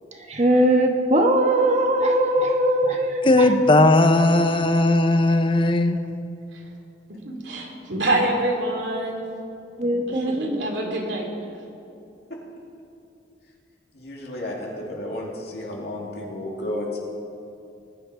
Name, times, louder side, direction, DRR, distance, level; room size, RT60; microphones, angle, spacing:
voice 1, 0.3-3.5 9.8-10.6, right 1 dB, 40° right, 2 dB, 1.3 m, -20 dB
voice 2, 3.2-6.0, left 2 dB, 30° left, 9 dB, 0.7 m, -17 dB
voice 3, 7.2-9.2 10.1-11.3, right 1 dB, 85° right, 1 dB, 2.6 m, -26 dB
voice 4, 13.9-17.0, left 1 dB, 60° left, -2 dB, 2.7 m, -32 dB
20.0 x 10.0 x 5.0 m, 2.6 s
head